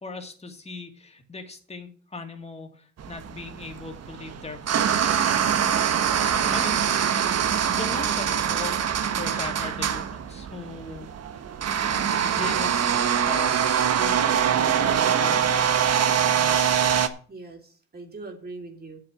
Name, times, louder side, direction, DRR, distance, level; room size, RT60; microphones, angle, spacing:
voice 1, 0.0-5.1 6.5-6.8 7.7-8.8 9.2-11.1 12.2-12.9 13.3-13.6 13.9-14.4 14.8-16.0 16.4-16.6, left 3 dB, 20° left, 4 dB, 2.5 m, -39 dB
sound 1, 3.0-17.1, right 8 dB, 55° right, 1.4 m, -24 dB
voice 2, 6.9-7.4 17.3-19.0, right 3 dB, 30° right, 2 dB, 3.4 m, -41 dB
7.7 x 7.4 x 8.3 m, 0.43 s
cardioid pair, 90°, 30 cm